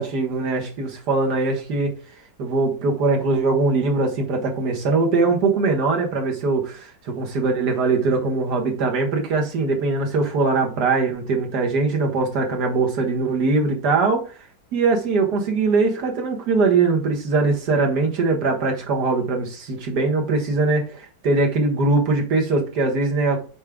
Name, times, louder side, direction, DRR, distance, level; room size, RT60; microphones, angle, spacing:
voice 1, 0.0-2.0 2.4-6.9 7.2-14.3 14.7-23.4, right 3 dB, 65° right, 2.0 m, -21 dB
6.4 x 4.9 x 3.6 m
omnidirectional pair, 1.9 m